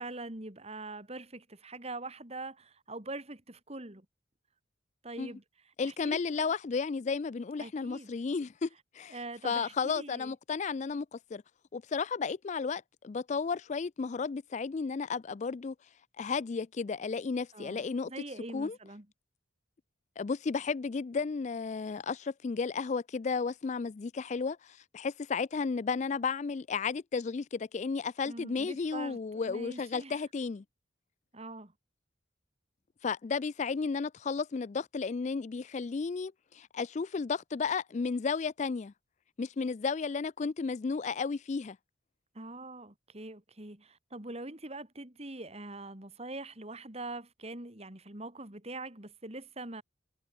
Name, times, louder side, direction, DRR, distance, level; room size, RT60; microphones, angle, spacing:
voice 1, 0.0-4.1 5.0-5.4 5.8-6.5 7.6-8.1 9.1-10.3 17.5-19.1 28.3-30.2 31.3-31.7 42.3-49.8, right 2 dB, 30° right, 2.6 m, -43 dB
voice 2, 5.8-8.7 8.9-9.2 9.4-11.4 11.7-15.7 16.2-18.1 18.5-18.8 20.2-30.6 33.0-38.9 39.4-41.8, left 5 dB, 35° left, 0.4 m, -33 dB
head